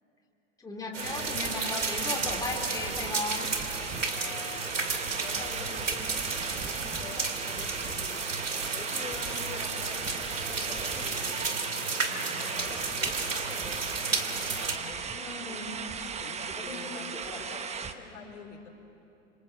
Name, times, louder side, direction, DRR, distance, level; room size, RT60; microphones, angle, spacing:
voice 1, 0.6-3.5 15.2-15.8 16.6-16.8 17.2-17.4, left 2 dB, 10° left, -1 dB, 3.7 m, -36 dB
sound 1, 0.9-14.8, right 4 dB, 90° right, 2.4 m, -33 dB
sound 2, 1.0-17.9, right 6 dB, 15° right, 1.2 m, -37 dB
voice 2, 4.1-18.7, left 4 dB, 75° left, 0 dB, 4.5 m, -46 dB
27.0 x 26.5 x 7.7 m, 2.7 s
hypercardioid pair, 105°, 37 cm